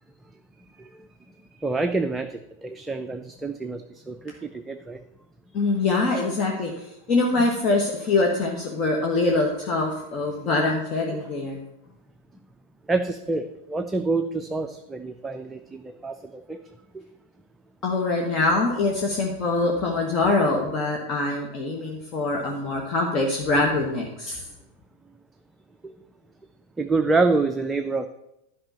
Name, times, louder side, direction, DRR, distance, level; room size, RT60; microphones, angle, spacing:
voice 1, 1.6-5.0 12.9-16.6 16.9-17.0 25.8-25.9 26.8-28.1, right 3 dB, 10° right, 7 dB, 0.6 m, -27 dB
voice 2, 5.5-11.6 17.8-24.4, left 3 dB, 35° left, 0 dB, 1.5 m, -24 dB
11.5 x 5.5 x 6.9 m, 0.85 s
figure-of-eight pair, 90°, 0 cm